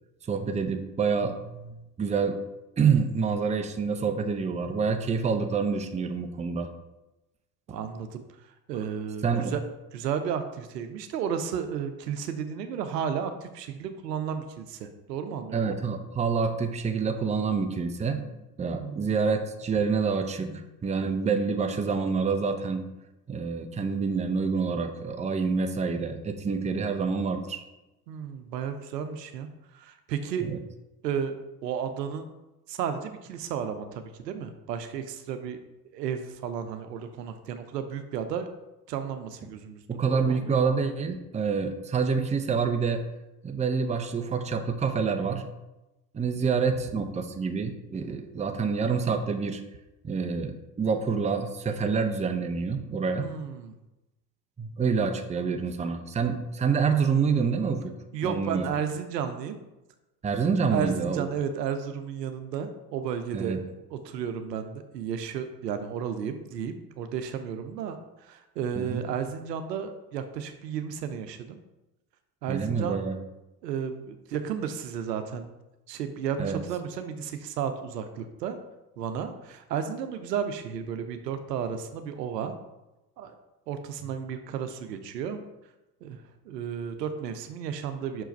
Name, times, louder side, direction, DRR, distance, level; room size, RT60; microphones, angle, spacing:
voice 1, 0.3-2.4 2.8-6.7 9.2-9.5 15.5-18.3 18.6-22.8 23.3-27.6 30.4-30.6 39.9-43.0 43.4-45.5 46.1-49.6 50.0-53.3 54.6-57.9 58.2-58.6 60.2-61.3 63.3-63.6 68.8-69.0 72.5-73.1 76.4-76.6, right 5 dB, 15° right, 7 dB, 0.6 m, -27 dB
voice 2, 7.7-9.6 9.9-15.6 18.8-19.2 28.1-30.5 31.0-31.4 31.6-32.3 32.7-35.6 35.9-38.5 38.9-40.5 53.2-53.8 58.1-59.6 60.7-71.6 72.4-73.0 73.6-75.5 75.9-78.6 79.0-82.5 83.2-83.3 83.7-85.4 86.0-88.2, right 7 dB, 80° right, 8 dB, 0.8 m, -33 dB
6.2 x 4.6 x 4.5 m, 0.98 s
hypercardioid pair, 70°, 49 cm